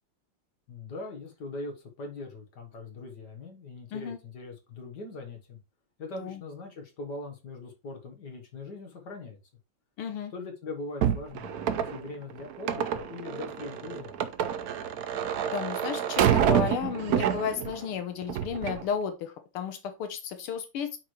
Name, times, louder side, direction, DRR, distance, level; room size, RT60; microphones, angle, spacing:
voice 1, 0.7-5.6 6.0-9.4 10.3-14.2, left 3 dB, 55° left, 3 dB, 1.8 m, -41 dB
voice 2, 10.0-10.3 15.5-21.0, left 7 dB, 80° left, 8 dB, 1.8 m, -33 dB
sound 1, 11.0-17.8 18.2-18.8, right 9 dB, 70° right, 0.8 m, -28 dB
8.8 x 4.7 x 3.1 m, 0.27 s
omnidirectional pair, 2.4 m